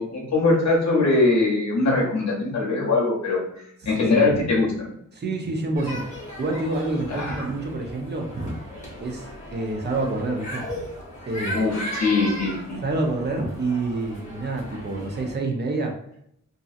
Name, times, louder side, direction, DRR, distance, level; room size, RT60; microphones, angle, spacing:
voice 1, 0.0-3.4 3.9-4.7 7.2-7.3 11.5-12.8, left 3 dB, 55° left, -3 dB, 0.7 m, -21 dB
voice 2, 3.9-4.5 5.1-6.0 6.4-8.6 9.0-10.8 11.3-11.7 12.8-15.9, right 2 dB, 30° right, 2 dB, 0.5 m, -28 dB
sound 1, 5.8-15.4, equal, 20° left, 0.7 m, -37 dB
2.7 x 2.5 x 2.4 m, 0.72 s
wide cardioid pair, 150°, 33 cm